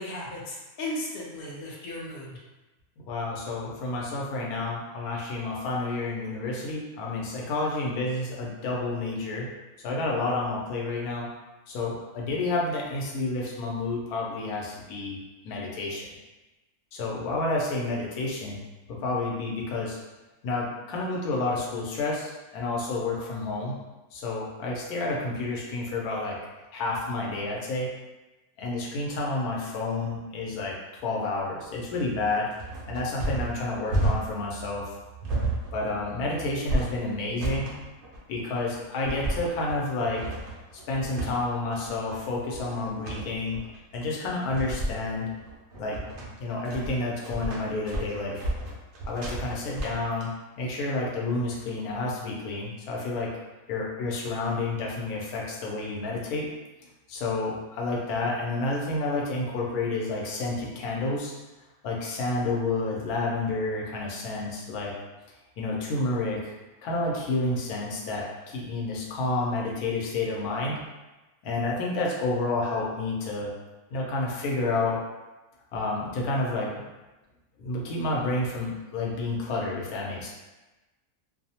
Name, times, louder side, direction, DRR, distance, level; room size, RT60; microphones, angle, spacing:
voice 1, 0.0-2.4, left 1 dB, 60° left, -3 dB, 0.6 m, -36 dB
voice 2, 3.1-9.5 9.8-11.3 11.7-15.2 15.4-16.1 16.9-18.6 18.9-20.0 20.4-23.7 24.1-26.4 26.7-27.9 28.6-30.8 31.0-32.5 32.9-34.9 35.7-37.7 38.3-40.2 40.9-43.6 43.9-45.3 45.8-46.0 46.4-48.4 49.1-50.3 50.6-53.3 53.7-56.5 57.1-61.3 61.8-64.9 65.6-66.5 66.8-70.8 71.4-73.5 73.9-75.0 75.7-76.7 77.6-80.3, left 2 dB, 80° left, -3 dB, 1.1 m, -30 dB
sound 1, 31.6-50.2, right 1 dB, 85° right, 0.4 m, -32 dB
2.6 x 2.0 x 2.7 m, 1.1 s
omnidirectional pair, 1.6 m